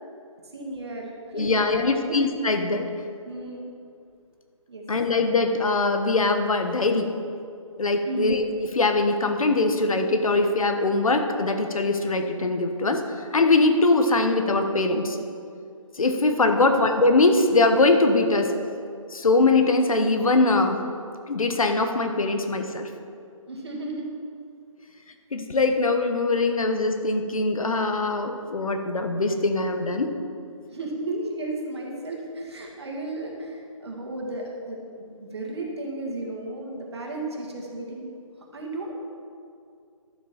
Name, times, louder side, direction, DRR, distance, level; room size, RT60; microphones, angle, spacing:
voice 1, 0.5-2.2 3.2-3.7 4.7-4.8 8.1-8.4 16.6-16.8 23.5-24.1 30.7-38.1 38.5-38.9, right 2 dB, 50° right, -1 dB, 2.0 m, -34 dB
voice 2, 1.3-2.9 4.9-7.1 7.8-8.5 8.7-13.0 13.3-15.2 16.0-18.5 19.1-20.8 21.3-22.9 25.3-30.1, left 3 dB, 90° left, 6 dB, 1.2 m, -22 dB
12.0 x 7.4 x 4.3 m, 2.4 s
hypercardioid pair, 175°, 17 cm